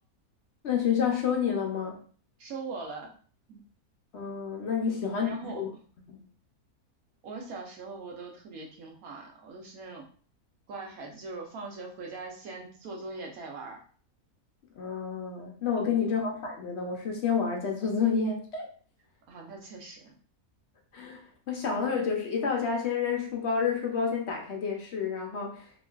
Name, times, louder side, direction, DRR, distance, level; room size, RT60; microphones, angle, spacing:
voice 1, 0.6-2.0 4.1-5.7 6.1-6.2 14.8-18.7 20.9-25.7, left 6 dB, 60° left, 0 dB, 0.7 m, -29 dB
voice 2, 2.4-3.1 3.5-3.6 4.8-5.6 7.2-10.0 10.7-13.8 15.8-16.1 19.3-20.2, right 3 dB, 75° right, 1 dB, 1.2 m, -41 dB
2.9 x 2.7 x 2.3 m, 0.43 s
omnidirectional pair, 1.6 m